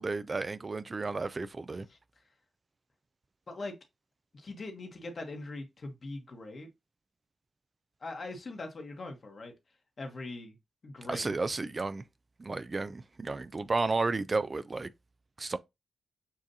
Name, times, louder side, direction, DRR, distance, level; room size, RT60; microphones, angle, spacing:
voice 1, 0.0-1.9 11.1-12.0 12.4-14.9 15.4-15.6, right 3 dB, 40° right, 0.4 m, -32 dB
voice 2, 4.3-6.7 8.0-9.5 10.0-10.6 10.8-11.3, left 2 dB, 55° left, 1.4 m, -41 dB
7.3 x 2.5 x 2.7 m
supercardioid pair, 45°, 0 cm